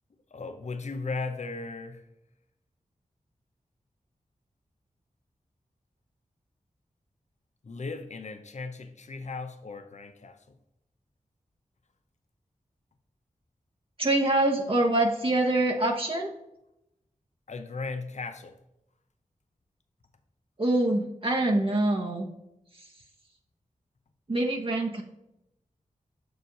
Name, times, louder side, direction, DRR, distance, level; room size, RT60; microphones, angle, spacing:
voice 1, 0.3-2.1 7.6-10.6 17.5-18.6, left 3 dB, 55° left, 8 dB, 0.7 m, -37 dB
voice 2, 14.0-16.3 20.6-22.3 22.8-22.9 24.3-25.0, right 2 dB, 40° right, 0 dB, 1.1 m, -25 dB
6.4 x 4.9 x 3.9 m, 0.86 s
cardioid pair, 45°, 14 cm